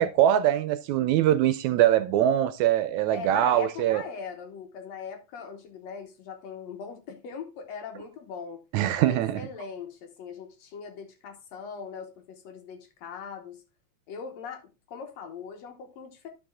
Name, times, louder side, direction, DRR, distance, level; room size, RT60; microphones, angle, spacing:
voice 1, 0.0-4.0 8.7-9.4, right 12 dB, 80° right, 1.8 m, -23 dB
voice 2, 3.1-8.6 8.9-13.6 14.1-16.3, left 6 dB, 65° left, 2.1 m, -40 dB
12.0 x 4.8 x 3.6 m
omnidirectional pair, 3.5 m